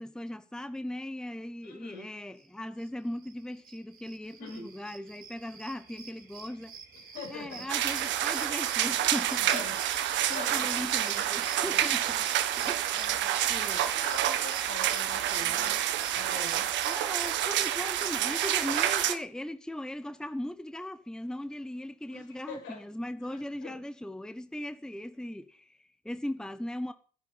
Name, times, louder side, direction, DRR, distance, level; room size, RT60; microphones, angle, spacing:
voice 1, 0.0-6.8 7.3-9.6 10.3-12.3 12.6-13.9 15.4-15.8 16.8-26.9, left 1 dB, 5° left, 1.1 m, -39 dB
voice 2, 1.6-2.1 4.4-4.7 6.9-7.7 9.5-9.8 10.1-11.9 12.9-15.7 16.1-16.7 22.1-22.8 23.2-23.7, left 5 dB, 65° left, 6.5 m, -45 dB
sound 1, 2.8-2.9 3.1-19.0, right 6 dB, 45° right, 4.3 m, -46 dB
sound 2, 7.7-19.1, right 11 dB, 60° right, 1.6 m, -28 dB
16.0 x 10.5 x 5.6 m
hypercardioid pair, 65°, 21 cm